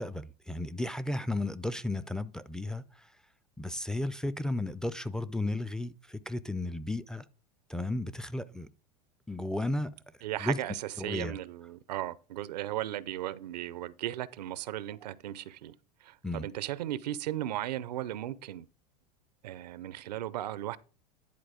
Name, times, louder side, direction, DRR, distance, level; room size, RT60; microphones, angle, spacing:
voice 1, 0.0-3.1 3.6-7.2 7.7-8.7 9.3-9.9 10.4-10.6 11.0-11.4 16.2-16.5, left 1 dB, 5° left, 0.3 m, -34 dB
voice 2, 10.2-15.7 16.0-18.7 19.4-20.8, right 13 dB, 90° right, 0.6 m, -36 dB
10.5 x 4.1 x 5.0 m
supercardioid pair, 120°, 21 cm